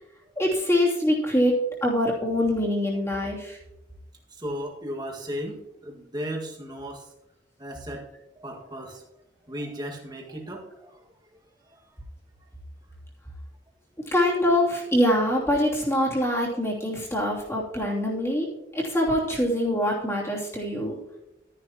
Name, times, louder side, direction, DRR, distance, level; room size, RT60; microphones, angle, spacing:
voice 1, 0.4-3.6 14.1-18.5 18.7-21.0, left 1 dB, 15° left, -4 dB, 2.9 m, -24 dB
voice 2, 4.3-7.1 7.6-8.1 8.4-9.0 9.5-11.0, equal, 25° right, 0 dB, 1.8 m, -35 dB
13.0 x 10.0 x 3.0 m, 0.89 s
head